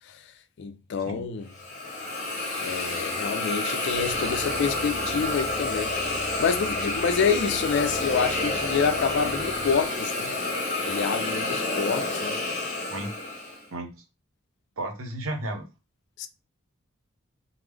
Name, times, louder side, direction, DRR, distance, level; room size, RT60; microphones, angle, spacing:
voice 1, 0.6-1.5 2.6-10.3 10.8-12.4 16.2-16.3, left 6 dB, 55° left, 0.4 m, -27 dB
Hiss, 1.5-13.6, left 2 dB, 35° left, 0.9 m, -29 dB
sound 1, 3.9-10.0, right 1 dB, 40° right, 0.5 m, -42 dB
voice 2, 12.6-13.1 13.7-13.9 14.8-15.7, right 1 dB, 70° right, 0.8 m, -34 dB
3.4 x 2.0 x 3.3 m
head